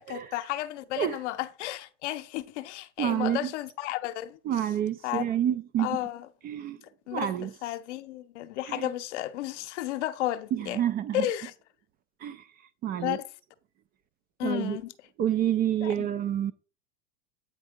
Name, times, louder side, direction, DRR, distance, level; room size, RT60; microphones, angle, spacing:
voice 1, 0.0-4.4 5.0-5.2 5.8-6.3 7.1-10.8 11.1-11.5 13.0-13.2 14.4-14.9 15.8-16.1, left 14 dB, 70° left, 0.8 m, -33 dB
voice 2, 3.0-3.5 4.5-6.0 6.4-6.8 7.1-7.5 8.7-8.9 10.5-11.3 12.2-12.5 12.8-13.2 14.4-14.8 15.2-16.5, right 10 dB, 25° right, 0.4 m, -28 dB
8.7 x 3.5 x 5.0 m
hypercardioid pair, 115°, 37 cm